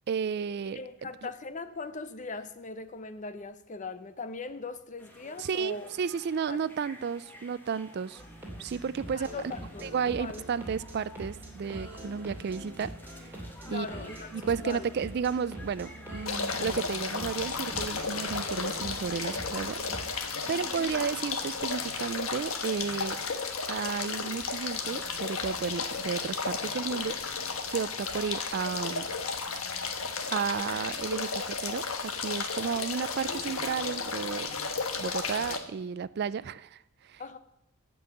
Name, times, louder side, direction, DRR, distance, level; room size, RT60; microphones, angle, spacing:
voice 1, 0.1-0.8 1.2-1.3 5.4-8.2 8.6-9.3 9.8-12.9 13.3-13.4 13.7-13.9 14.3-20.2 20.5-23.2 23.7-27.1 27.7-29.1 30.3-34.5 35.0-37.2, right 6 dB, 50° right, 0.4 m, -33 dB
voice 2, 0.7-5.9 6.5-6.6 9.1-9.9 10.2-10.4 13.6-14.9 20.4-20.9 37.2-37.4, left 3 dB, 35° left, 0.7 m, -40 dB
sound 1, 5.0-22.4, left 1 dB, 10° left, 1.6 m, -52 dB
sound 2, 8.2-20.1, right 1 dB, 10° right, 2.9 m, -44 dB
sound 3, 16.3-35.6, left 5 dB, 80° left, 1.3 m, -34 dB
14.0 x 5.4 x 7.7 m
head